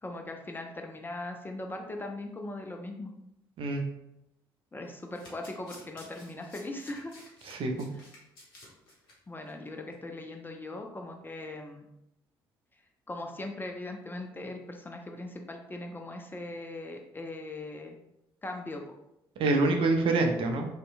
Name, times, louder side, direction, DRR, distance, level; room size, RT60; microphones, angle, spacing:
voice 1, 0.0-3.1 4.7-7.1 9.3-11.9 13.1-18.0 18.4-18.8, left 2 dB, 15° left, 3 dB, 0.4 m, -39 dB
Domestic sounds home sounds, 5.0-9.1 9.5-9.7 9.9-10.0, left 2 dB, 85° left, 0.6 m, -53 dB
voice 2, 7.4-7.9 19.4-20.7, right 2 dB, 50° right, 3 dB, 0.4 m, -26 dB
2.7 x 2.1 x 2.4 m, 0.83 s
figure-of-eight pair, 45°, 12 cm